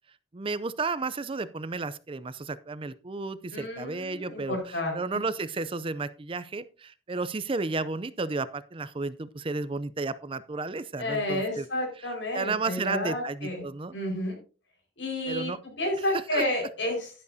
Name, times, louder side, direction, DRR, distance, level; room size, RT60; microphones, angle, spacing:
voice 1, 0.3-11.7 12.0-13.9 15.3-15.6 16.0-16.4, right 3 dB, 30° right, 15 dB, 0.5 m, -33 dB
voice 2, 3.5-5.0 11.0-13.6 13.9-14.4 15.0-15.5 15.8-17.1, left 1 dB, 85° left, 2 dB, 4.9 m, -30 dB
11.5 x 11.0 x 2.7 m, 0.35 s
head